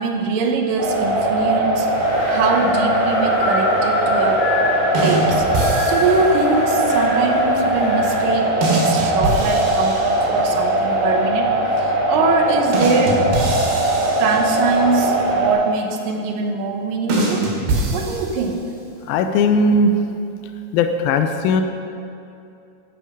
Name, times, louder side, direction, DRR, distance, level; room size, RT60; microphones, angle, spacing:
voice 1, 0.0-1.9 2.3-4.5 5.0-5.5 5.8-13.2 14.2-17.5 17.9-18.7, right 4 dB, 70° right, 3 dB, 2.4 m, -22 dB
sound 1, 0.8-15.5, right 1 dB, 40° right, 2.4 m, -20 dB
Wind, 1.9-8.3, left 2 dB, 55° left, 3.5 m, -28 dB
sound 2, 4.9-6.4 8.6-10.6 12.7-14.9 17.1-18.7, right 2 dB, 85° right, 4.0 m, -24 dB
voice 2, 19.1-20.0 20.7-21.6, left 2 dB, 80° left, 7 dB, 2.4 m, -17 dB
13.0 x 8.9 x 5.5 m, 2.6 s
omnidirectional pair, 4.4 m